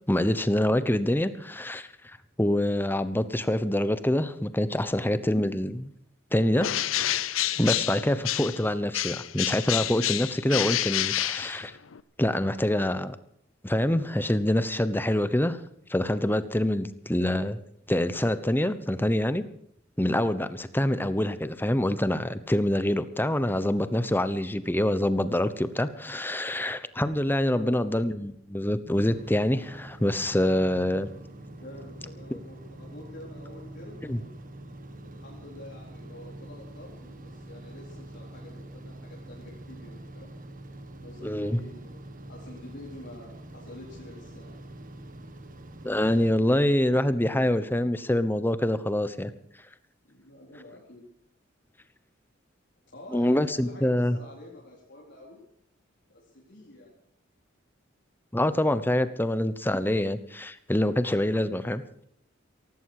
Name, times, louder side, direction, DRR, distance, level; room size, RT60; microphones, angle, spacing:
voice 1, 0.1-1.9 2.4-5.9 6.3-6.7 7.6-11.7 12.2-13.2 13.6-15.6 15.9-17.6 17.9-19.5 20.0-31.1 32.3-32.4 34.1-34.2 41.2-41.6 45.8-49.3 53.1-54.2 58.3-61.8, left 1 dB, 10° left, 13 dB, 1.0 m, -25 dB
Bird, 6.6-8.7 8.9-12.0, left 13 dB, 85° left, 0.7 m, -29 dB
voice 2, 27.4-27.8 31.6-34.4 35.0-40.3 41.0-42.0 42.3-44.5 50.0-51.0 52.9-55.4 56.1-56.9, left 1 dB, 60° left, -4 dB, 4.2 m, -47 dB
sound 1, 28.9-46.3, right 1 dB, 45° right, 1.5 m, -45 dB
17.5 x 16.0 x 4.9 m, 0.69 s
head